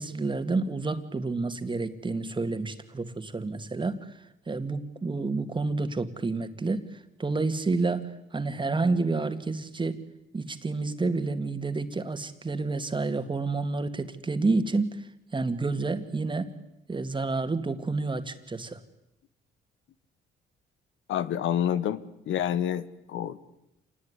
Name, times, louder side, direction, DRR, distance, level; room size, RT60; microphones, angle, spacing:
voice 1, 0.0-10.0 10.3-16.5 16.9-18.8, right 3 dB, 25° right, 9 dB, 2.2 m, -29 dB
voice 2, 21.1-23.4, left 10 dB, 80° left, 14 dB, 1.4 m, -28 dB
27.0 x 19.5 x 9.8 m, 0.88 s
cardioid pair, 90°, 20 cm